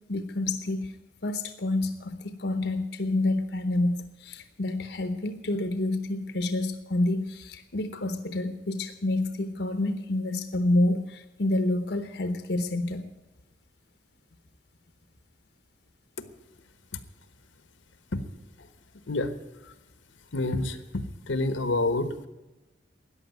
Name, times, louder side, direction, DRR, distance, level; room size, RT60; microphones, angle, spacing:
voice 1, 0.1-0.9 1.2-13.1, left 2 dB, 60° left, 9 dB, 0.9 m, -28 dB
voice 2, 19.1-19.7 20.1-22.3, left 2 dB, 90° left, 11 dB, 1.2 m, -29 dB
14.0 x 9.9 x 9.2 m, 1.0 s
head